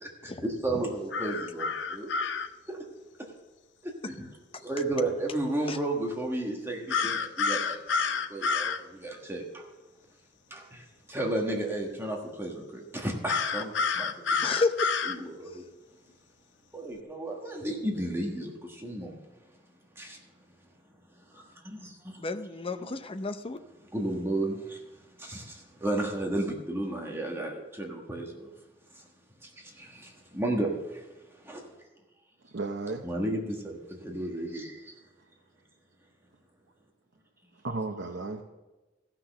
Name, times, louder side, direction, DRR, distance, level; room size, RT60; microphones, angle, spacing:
voice 1, 0.0-2.1 2.7-2.8 3.2-3.3 3.8-4.3 4.6-9.7 10.5-14.4 15.2-15.6 16.7-19.2 19.9-20.2 21.3-22.2 23.9-28.5 28.9-29.1 29.4-31.7 33.0-34.9, right 1 dB, 15° right, 1.4 m, -33 dB
sound 1, 1.1-2.5 6.9-8.8 13.3-15.2, left 5 dB, 70° left, 0.6 m, -29 dB
voice 2, 14.4-14.9 15.5-15.6 22.2-23.6, left 3 dB, 30° left, 0.6 m, -31 dB
voice 3, 32.4-33.0 37.5-38.4, right 3 dB, 70° right, 0.8 m, -34 dB
15.5 x 6.0 x 6.6 m
head